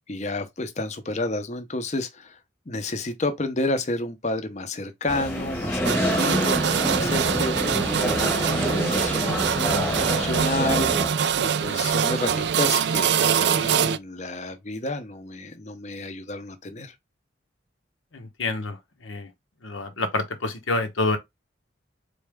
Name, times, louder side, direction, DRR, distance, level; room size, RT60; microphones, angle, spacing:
voice 1, 0.0-2.4 2.7-9.4 9.9-11.1 11.4-16.9, left 2 dB, 35° left, 0.7 m, -31 dB
sound 1, 5.1-11.1, equal, 10° left, 1.2 m, -27 dB
sound 2, 5.8-14.0, right 7 dB, 60° right, 0.3 m, -24 dB
voice 2, 18.1-18.8 19.0-19.3 19.6-21.2, left 2 dB, 90° left, 1.0 m, -27 dB
4.2 x 3.2 x 3.5 m
head